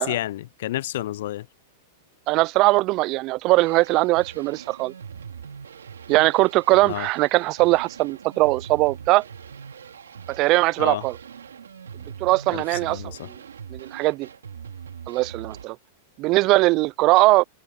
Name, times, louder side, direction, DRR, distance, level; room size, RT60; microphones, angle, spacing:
voice 1, 0.0-1.5 6.8-7.1 10.8-11.0 12.5-13.3, left 14 dB, 65° left, 0.4 m, -30 dB
voice 2, 2.3-4.9 6.1-9.2 10.3-11.2 12.2-13.3 13.7-14.3 15.1-15.8 16.2-17.4, right 21 dB, 45° right, 0.4 m, -20 dB
sound 1, 3.6-15.6, right 7 dB, 85° right, 3.6 m, -42 dB
hypercardioid pair, 105°, 0 cm